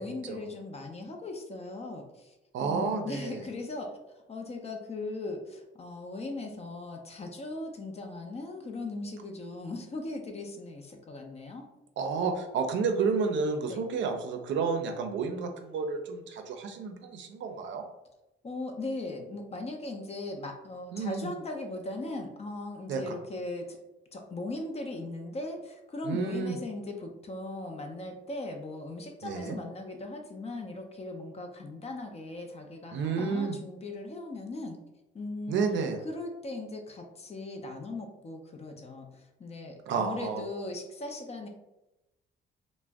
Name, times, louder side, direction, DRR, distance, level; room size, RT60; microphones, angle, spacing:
voice 1, 0.0-4.0 4.3-11.7 13.7-13.8 18.4-23.8 24.1-34.8 35.1-35.6 36.0-41.5, left 2 dB, 30° left, 3 dB, 0.5 m, -39 dB
voice 2, 2.5-3.4 12.0-17.9 20.9-21.3 22.9-23.2 26.0-26.6 29.2-29.6 32.9-33.6 35.5-36.0 39.9-40.4, right 5 dB, 70° right, 5 dB, 0.5 m, -30 dB
2.4 x 2.1 x 3.4 m, 0.96 s
cardioid pair, 90°, 20 cm